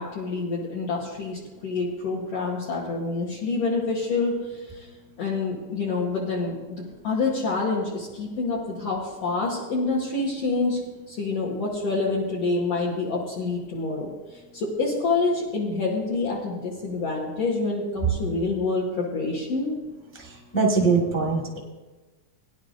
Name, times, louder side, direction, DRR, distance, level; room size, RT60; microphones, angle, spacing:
voice 1, 0.0-4.9 5.2-6.8 7.0-10.8 11.1-14.1 14.5-19.8, left 3 dB, 60° left, -4 dB, 2.2 m, -27 dB
voice 2, 20.5-21.6, right 4 dB, 15° left, -2 dB, 0.5 m, -21 dB
18.0 x 10.5 x 2.6 m, 1.2 s
omnidirectional pair, 3.3 m